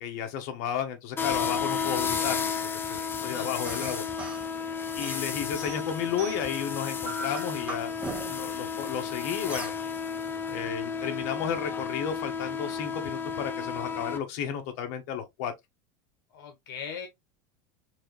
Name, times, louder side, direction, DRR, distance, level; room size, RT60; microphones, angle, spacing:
voice 1, 0.0-2.4 2.9-4.0 4.9-7.9 8.3-9.7 10.5-15.5, left 8 dB, 65° left, 1.3 m, -33 dB
sound 1, 1.2-14.2, left 6 dB, 20° left, 0.6 m, -32 dB
voice 2, 3.2-3.5 16.3-17.1, left 7 dB, 85° left, 1.1 m, -39 dB
sound 2, 3.7-4.5 5.0-6.6 7.0-8.5 9.5-9.8, right 2 dB, 10° right, 1.5 m, -39 dB
4.6 x 2.8 x 3.1 m
supercardioid pair, 125°, 11 cm